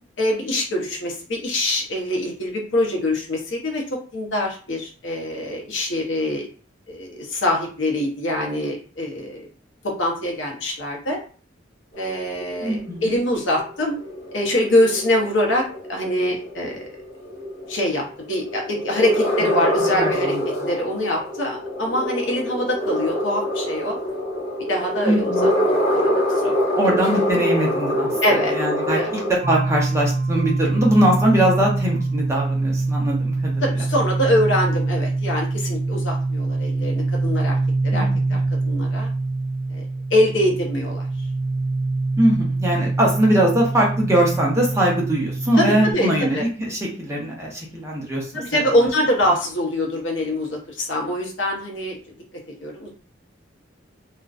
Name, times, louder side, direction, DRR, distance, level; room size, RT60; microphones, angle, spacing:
voice 1, 0.2-3.8 4.1-6.5 6.9-9.5 9.8-11.2 12.0-14.0 14.3-15.6 15.9-16.9 17.7-20.3 20.7-24.0 24.7-25.5 25.9-26.6 28.2-28.5 29.0-29.1 33.6-37.6 37.8-38.4 38.6-39.1 39.7-39.8 40.1-41.0 45.6-46.4 48.3-52.0 52.6-52.9, left 1 dB, 80° left, 0 dB, 0.7 m, -24 dB
sound 1, 11.9-29.3, equal, 35° left, 0.7 m, -25 dB
voice 2, 12.6-13.1 19.4-19.5 19.8-20.7 25.0-25.5 26.8-33.8 37.9-38.4 42.2-48.4, right 1 dB, 15° right, -2 dB, 0.6 m, -22 dB
sound 2, 29.4-45.9, right 3 dB, 65° right, 0.4 m, -24 dB
2.5 x 2.1 x 2.4 m, 0.40 s
head